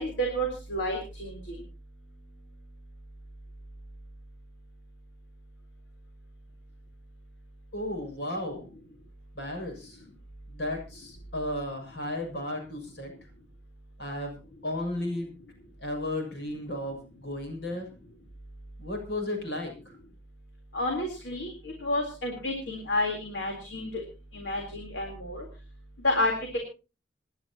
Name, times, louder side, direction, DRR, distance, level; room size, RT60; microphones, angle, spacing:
voice 1, 0.0-1.6 20.7-24.0 24.3-25.5 26.0-26.3, left 1 dB, 85° left, 2 dB, 3.8 m, -30 dB
voice 2, 7.7-8.7 9.3-10.0 10.5-13.1 14.0-15.4 15.8-17.9 18.8-19.9, left 1 dB, 65° left, 3 dB, 6.8 m, -34 dB
27.5 x 11.0 x 2.9 m, 0.33 s
head